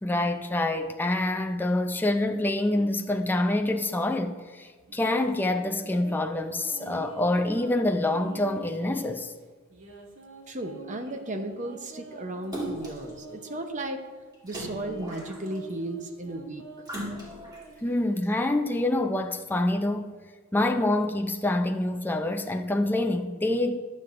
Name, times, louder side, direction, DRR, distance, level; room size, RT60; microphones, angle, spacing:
voice 1, 0.0-9.3 17.8-20.1 20.5-23.8, left 1 dB, 10° left, 0.4 m, -26 dB
sound 1, 2.6-4.2 4.9-9.2 9.7-13.9 14.5-18.7, right 3 dB, 75° right, 1.5 m, -47 dB
voice 2, 10.5-14.0 14.4-16.6, right 1 dB, 35° right, 0.8 m, -35 dB
Splash splatter, 12.5-13.1 14.5-15.7 16.8-17.6 18.2-18.3, equal, 20° right, 1.9 m, -37 dB
22.0 x 7.5 x 2.6 m
head